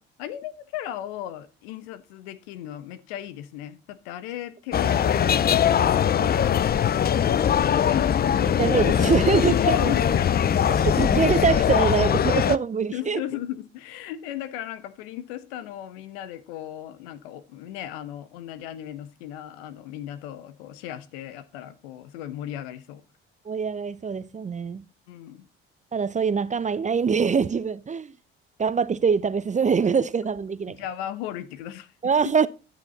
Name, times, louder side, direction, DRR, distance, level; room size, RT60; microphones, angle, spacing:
voice 1, 0.0-8.6 9.5-10.5 12.9-23.0 25.1-25.5 30.7-31.9, left 11 dB, 75° left, 1.0 m, -37 dB
sound 1, 4.7-12.6, left 9 dB, 30° left, 0.5 m, -21 dB
voice 2, 8.4-9.9 11.0-13.2 23.5-24.8 25.9-28.1 28.6-30.8 32.0-32.5, right 6 dB, 25° right, 0.6 m, -24 dB
11.5 x 6.7 x 4.0 m
hypercardioid pair, 55°, 32 cm